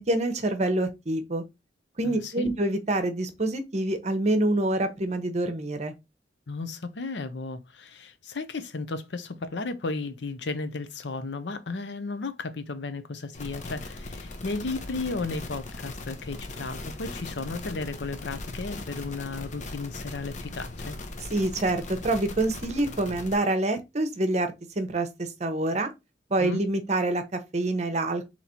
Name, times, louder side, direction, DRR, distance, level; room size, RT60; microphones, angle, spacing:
voice 1, 0.1-1.4 2.0-5.9 21.3-25.9 26.3-28.2, right 2 dB, 40° right, 0.8 m, -26 dB
voice 2, 2.0-2.5 6.5-21.0 26.4-26.6, left 3 dB, 80° left, 0.7 m, -34 dB
sound 1, 13.3-23.4, left 2 dB, 45° left, 0.7 m, -39 dB
4.0 x 3.0 x 4.3 m
head